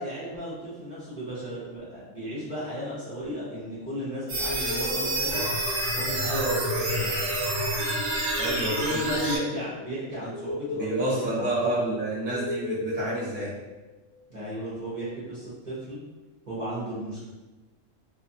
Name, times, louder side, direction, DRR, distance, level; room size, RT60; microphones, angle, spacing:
voice 1, 0.0-5.4 5.9-7.3 8.6-12.0 14.3-16.0 16.5-17.2, equal, 40° right, -10 dB, 0.8 m, -34 dB
sound 1, 4.3-14.0, left 2 dB, 75° left, 1.0 m, -36 dB
sound 2, 4.3-9.4, right 2 dB, 75° right, 1.1 m, -28 dB
voice 2, 8.3-9.0 10.8-13.5, right 2 dB, 10° right, -10 dB, 0.5 m, -29 dB
2.4 x 2.4 x 2.6 m, 1.2 s
omnidirectional pair, 1.4 m